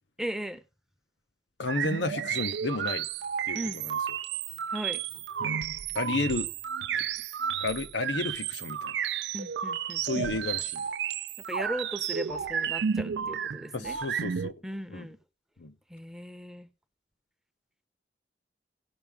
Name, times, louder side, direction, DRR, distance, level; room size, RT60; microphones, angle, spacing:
voice 1, 0.2-0.6 3.5-3.8 4.7-5.0 9.3-10.3 11.5-14.0 14.6-15.2 15.9-16.7, right 1 dB, 5° right, 0.7 m, -37 dB
voice 2, 1.6-3.1 3.4-3.9 5.4-5.7 5.9-6.5 6.9-7.0 7.6-9.0 10.0-10.9 13.7-14.6 14.9-15.1 15.6-15.7, left 3 dB, 90° left, 1.0 m, -32 dB
sound 1, 1.7-14.5, right 8 dB, 75° right, 0.4 m, -32 dB
17.0 x 5.8 x 3.6 m
head